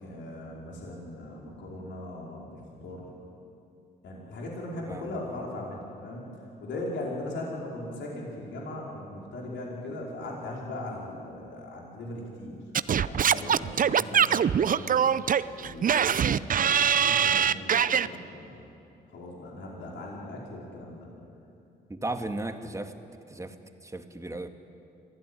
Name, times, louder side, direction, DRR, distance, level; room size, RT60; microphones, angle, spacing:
voice 1, 0.0-3.1 4.0-6.3 6.6-12.6 13.0-15.2 15.6-18.6 19.1-21.1 22.1-22.2, left 1 dB, 75° left, -3 dB, 4.8 m, -39 dB
voice 2, 4.9-5.4 13.4-13.7 21.9-22.9 23.3-23.6 23.8-24.5, right 2 dB, 15° right, 6 dB, 2.0 m, -36 dB
Singing / Scratching (performance technique), 12.7-18.1, right 8 dB, 45° right, 0.6 m, -23 dB
24.5 x 16.0 x 10.0 m, 2.6 s
supercardioid pair, 60°, 19 cm